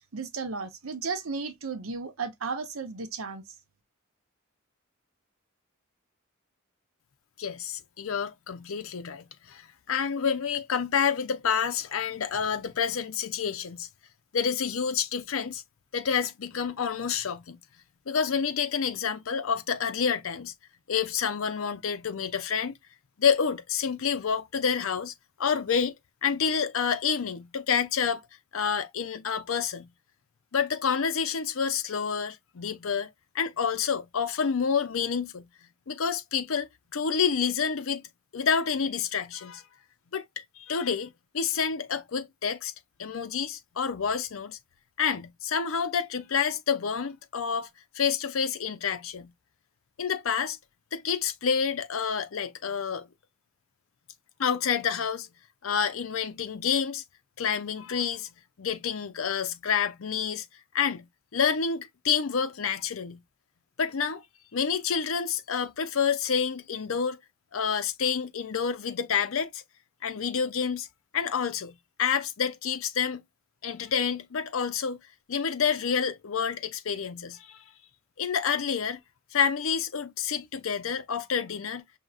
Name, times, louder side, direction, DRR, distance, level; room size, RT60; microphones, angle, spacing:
voice 1, 0.1-3.4, right 4 dB, 75° right, 0.9 m, -34 dB
voice 2, 7.4-13.9 14.3-15.6 15.9-17.6 18.1-20.5 20.9-22.7 23.2-25.1 25.4-25.9 26.2-28.2 28.5-29.9 30.5-33.1 33.3-35.4 35.9-38.0 38.3-39.6 40.1-42.7 43.0-44.6 45.0-47.7 47.9-49.3 50.0-50.6 50.9-53.1 54.4-55.3 55.6-57.0 57.4-58.3 58.6-60.4 60.7-61.0 61.3-63.2 63.8-64.2 64.5-67.2 67.5-69.6 70.0-70.9 71.1-71.7 72.0-73.2 73.6-75.0 75.3-77.6 78.2-79.0 79.3-81.8, left 6 dB, 70° left, 0.6 m, -28 dB
5.6 x 2.8 x 2.4 m
head